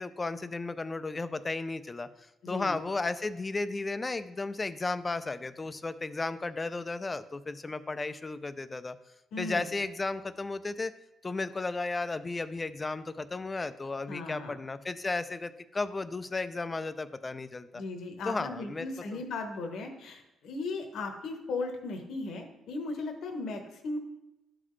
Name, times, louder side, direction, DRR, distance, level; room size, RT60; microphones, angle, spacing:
voice 1, 0.0-2.1 2.5-9.0 9.4-10.9 11.2-17.8 18.2-19.2, left 3 dB, 25° left, 12 dB, 0.4 m, -34 dB
voice 2, 2.4-2.8 9.3-9.7 14.1-14.5 17.7-24.0, left 3 dB, 75° left, 4 dB, 1.0 m, -37 dB
11.5 x 4.0 x 3.2 m, 0.95 s
cardioid pair, 90°, 0 cm